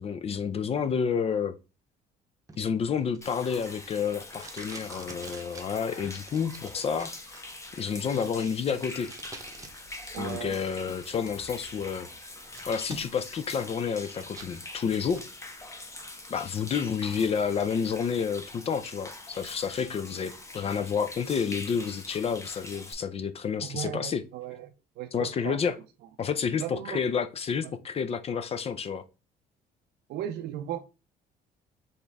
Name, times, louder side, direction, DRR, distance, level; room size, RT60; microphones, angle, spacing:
voice 1, 0.0-1.6 2.6-7.1 7.7-9.1 10.2-12.1 12.7-15.2 16.3-24.2 25.1-25.7 26.2-29.0, left 6 dB, 35° left, 0.4 m, -30 dB
Packing tape duct tape, 2.5-10.0 10.3-11.3 11.8-11.9 12.2-13.4 13.7-14.5 14.9-15.3, right 3 dB, 20° right, 0.9 m, -48 dB
Human voice / Rain / Stream, 3.2-22.9, left 2 dB, 15° left, 1.0 m, -44 dB
voice 2, 10.1-10.6 23.6-24.7 25.0-25.6 26.6-27.0 30.1-30.8, right 11 dB, 75° right, 0.5 m, -36 dB
4.3 x 3.4 x 3.4 m
cardioid pair, 110°, 17 cm